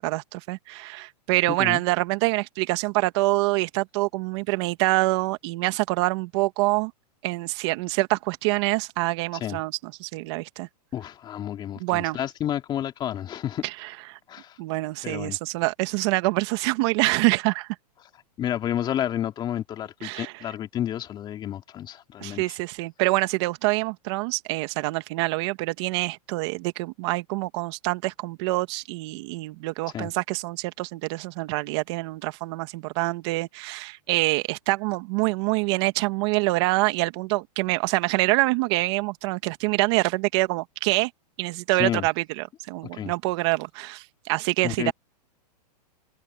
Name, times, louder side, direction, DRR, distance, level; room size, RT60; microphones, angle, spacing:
voice 1, 0.0-6.9 7.2-10.7 11.8-12.2 13.6-14.2 14.6-17.7 20.0-20.4 22.2-41.1 41.4-44.9, right 22 dB, 40° right, 1.7 m, -26 dB
voice 2, 1.5-1.8 9.3-9.6 10.9-13.6 14.3-14.6 15.0-15.4 18.4-22.4 29.9-30.1 41.8-42.0 42.9-43.1 44.6-44.9, left 11 dB, 20° left, 2.6 m, -30 dB
hypercardioid pair, 150°, 21 cm